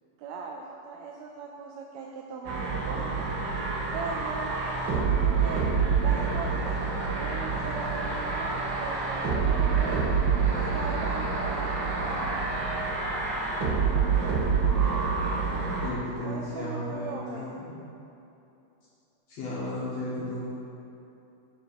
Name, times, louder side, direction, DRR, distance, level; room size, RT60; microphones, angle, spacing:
voice 1, 0.2-3.3 3.9-5.6 6.0-6.7 7.1-10.2 10.7-12.4 16.2-17.6, right 4 dB, 85° right, 0 dB, 1.5 m, -39 dB
sound 1, 2.4-15.9, right 5 dB, 60° right, 1.2 m, -27 dB
voice 2, 15.5-17.7 19.3-20.5, left 1 dB, 60° left, -8 dB, 2.6 m, -34 dB
5.9 x 5.2 x 6.4 m, 2.8 s
omnidirectional pair, 3.7 m